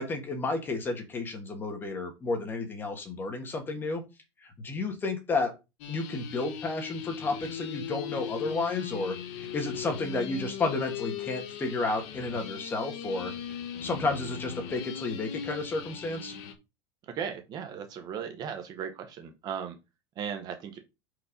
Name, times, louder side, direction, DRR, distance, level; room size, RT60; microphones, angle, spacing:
voice 1, 0.0-4.0 4.4-5.5 5.9-16.3, left 3 dB, 15° left, 5 dB, 1.3 m, -32 dB
sound 1, 5.8-16.5, left 9 dB, 40° left, 1.1 m, -39 dB
voice 2, 17.1-19.8 20.2-20.8, right 7 dB, 25° right, 6 dB, 0.9 m, -36 dB
5.2 x 4.9 x 5.1 m, 0.26 s
supercardioid pair, 175°, 15 cm